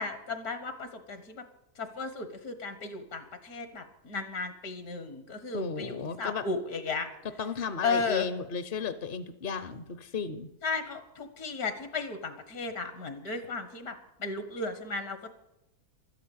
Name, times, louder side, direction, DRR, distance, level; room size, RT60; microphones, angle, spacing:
voice 1, 0.0-1.4 1.8-7.1 7.8-8.3 10.6-15.3, left 4 dB, 75° left, 10 dB, 1.9 m, -34 dB
voice 2, 5.5-6.4 7.4-10.5, left 5 dB, 50° left, 12 dB, 0.7 m, -34 dB
12.5 x 10.5 x 8.5 m, 0.91 s
omnidirectional pair, 1.6 m